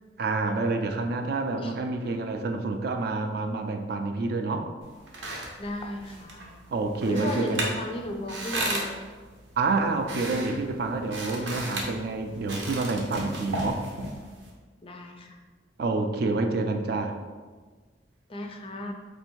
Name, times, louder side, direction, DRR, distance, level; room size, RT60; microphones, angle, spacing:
voice 1, 0.2-4.7 6.7-7.7 9.6-13.9 15.8-17.2, right 3 dB, 55° right, 5 dB, 0.3 m, -28 dB
sound 1, 4.8-14.5, right 1 dB, 85° right, 0.8 m, -35 dB
voice 2, 5.6-6.5 7.1-9.0 14.8-15.4 18.3-18.9, left 1 dB, 30° left, 4 dB, 0.4 m, -35 dB
3.3 x 2.6 x 4.5 m, 1.4 s
head